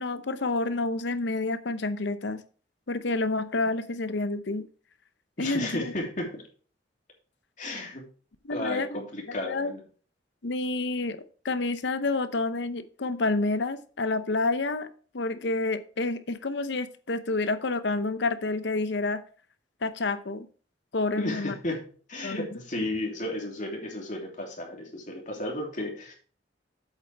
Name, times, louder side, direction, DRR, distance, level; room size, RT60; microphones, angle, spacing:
voice 1, 0.0-2.4 2.9-4.6 5.4-5.8 8.4-9.0 9.3-9.7 10.4-11.2 11.4-14.9 15.1-19.2 19.8-20.5 20.9-21.5 22.2-22.5, left 3 dB, 70° left, 12 dB, 0.8 m, -29 dB
voice 2, 5.4-6.4 7.6-8.1 8.5-9.8 21.2-21.8 22.1-26.1, left 1 dB, 45° left, 0 dB, 2.9 m, -33 dB
8.2 x 8.2 x 3.4 m, 0.42 s
head